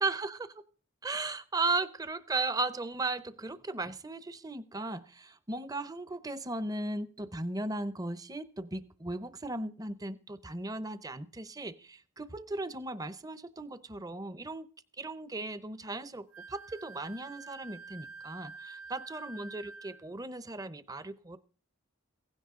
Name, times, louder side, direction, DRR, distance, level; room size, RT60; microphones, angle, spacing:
voice 1, 0.0-0.5 1.0-14.7 15.0-21.4, right 2 dB, 15° right, 14 dB, 0.7 m, -36 dB
Wind instrument woodwind instrument, 16.3-20.0, right 4 dB, 70° right, 2.1 m, -48 dB
16.5 x 16.0 x 3.7 m, 0.40 s
head